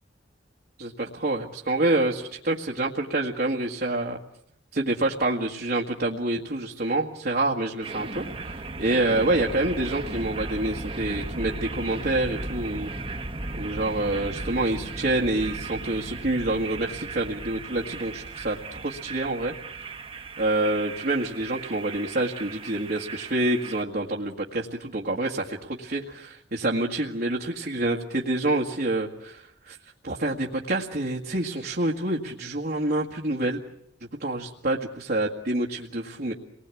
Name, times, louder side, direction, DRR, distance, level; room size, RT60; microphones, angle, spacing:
voice 1, 0.8-4.2 4.7-12.9 13.5-19.9 20.4-29.8 30.0-33.6 34.2-36.3, right 2 dB, 60° right, -1 dB, 1.9 m, -27 dB
sound 1, 7.8-23.8, right 2 dB, 30° right, 1.5 m, -36 dB
28.5 x 20.5 x 8.5 m, 0.76 s
head